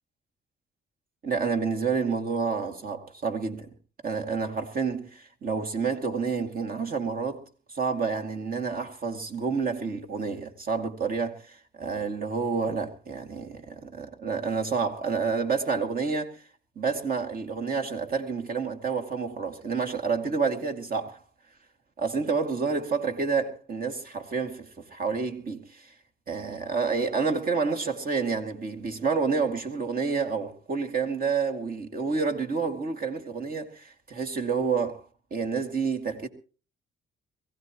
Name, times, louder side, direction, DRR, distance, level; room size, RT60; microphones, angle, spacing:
voice 1, 1.2-3.7 4.0-7.4 7.7-16.4 16.8-21.2 22.0-25.9 26.3-36.3, right 5 dB, 45° right, 2.3 m, -29 dB
22.5 x 15.5 x 3.0 m
cardioid pair, 90°, 20 cm